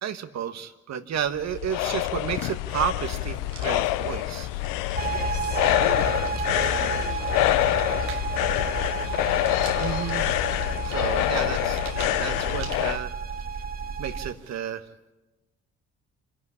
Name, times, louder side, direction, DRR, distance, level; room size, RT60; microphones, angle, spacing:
voice 1, 0.0-4.5 9.8-10.3 10.8-13.1 14.0-14.8, right 8 dB, 55° right, 9 dB, 1.3 m, -31 dB
sound 1, 1.1-13.0, left 16 dB, 80° left, 0.6 m, -26 dB
sound 2, 3.1-14.6, right 7 dB, 90° right, 2.2 m, -47 dB
sound 3, 5.0-14.3, right 5 dB, 30° right, 1.2 m, -32 dB
voice 2, 5.1-7.5 7.8-8.3 8.6-9.0, left 5 dB, 45° left, 3 dB, 2.8 m, -42 dB
25.5 x 11.5 x 9.8 m, 1.1 s
supercardioid pair, 70°, 32 cm